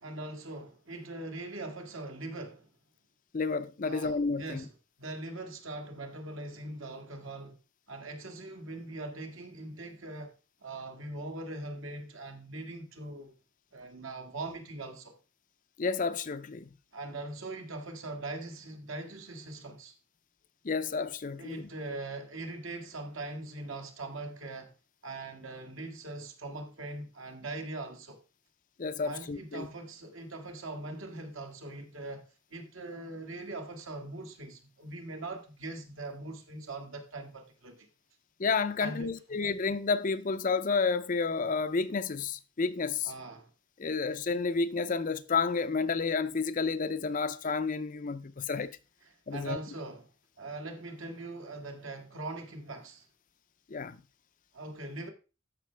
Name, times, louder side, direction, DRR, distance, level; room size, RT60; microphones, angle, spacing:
voice 1, 0.0-2.7 3.8-4.7 5.0-7.6 7.9-10.3 10.6-13.3 13.7-15.2 16.9-19.9 21.4-24.7 25.0-28.2 29.0-37.9 38.8-39.4 43.0-43.5 49.3-50.1 50.4-53.1 54.5-55.1, right 2 dB, 70° right, 1.7 m, -41 dB
voice 2, 3.3-4.6 15.8-16.7 20.6-21.7 28.8-29.7 38.4-43.1 43.8-48.7 49.3-49.6 53.7-54.0, left 4 dB, 40° left, 0.5 m, -30 dB
13.5 x 5.7 x 3.3 m
head